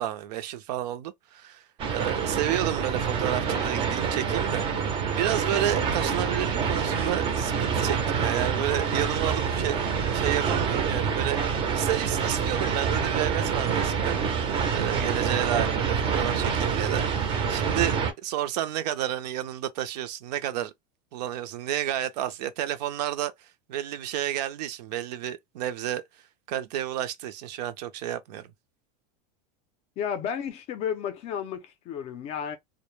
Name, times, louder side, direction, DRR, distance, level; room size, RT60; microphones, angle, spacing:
voice 1, 0.0-1.6 1.9-14.2 14.7-20.7 21.1-26.0 26.5-28.5, right 12 dB, 75° right, 0.5 m, -31 dB
sound 1, 1.8-18.1, right 6 dB, 25° right, 0.5 m, -27 dB
voice 2, 30.0-32.6, left 8 dB, 30° left, 0.4 m, -32 dB
2.1 x 2.1 x 3.0 m
supercardioid pair, 160°, 21 cm